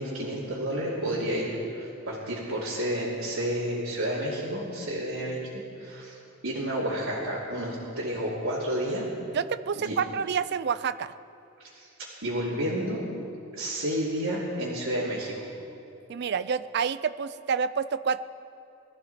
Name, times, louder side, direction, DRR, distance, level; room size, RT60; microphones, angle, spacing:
voice 1, 0.0-5.4 5.8-6.2 6.4-9.1 9.8-10.0 11.7-11.9 12.2-13.0 13.5-15.4, equal, 90° right, -10 dB, 2.9 m, -30 dB
voice 2, 9.3-11.1 16.1-18.2, right 6 dB, 55° right, 14 dB, 0.4 m, -28 dB
20.5 x 14.0 x 4.3 m, 2.7 s
head